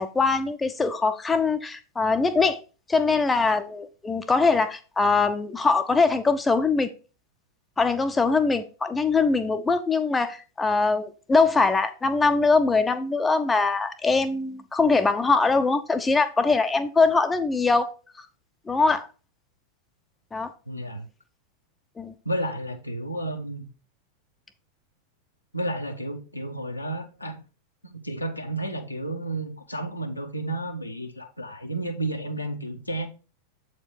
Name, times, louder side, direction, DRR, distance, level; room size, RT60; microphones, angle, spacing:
voice 1, 0.0-2.6 2.9-6.9 7.8-17.9 18.7-19.1 20.3-20.5 22.0-22.1, left 4 dB, 15° left, 0.6 m, -22 dB
voice 2, 20.7-21.1 22.2-23.7 25.5-27.4 27.9-33.1, right 1 dB, 85° left, 1.1 m, -32 dB
7.7 x 4.5 x 4.5 m
figure-of-eight pair, 90°, 0 cm